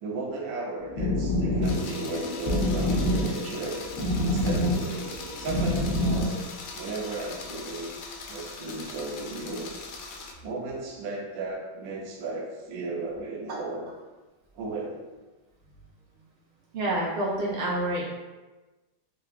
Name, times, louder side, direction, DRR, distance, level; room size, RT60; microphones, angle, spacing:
voice 1, 0.0-3.8 4.2-6.4 6.7-8.0 8.3-9.7 10.4-13.9 14.5-15.0, right 2 dB, 60° right, -2 dB, 0.9 m, -35 dB
sound 1, 0.8-6.4, left 1 dB, 55° left, 1.1 m, -27 dB
sound 2, 1.6-10.3, left 4 dB, 90° left, 1.5 m, -41 dB
voice 2, 16.7-18.0, right 1 dB, 85° right, -7 dB, 2.0 m, -28 dB
6.4 x 2.2 x 2.5 m, 1.2 s
omnidirectional pair, 2.2 m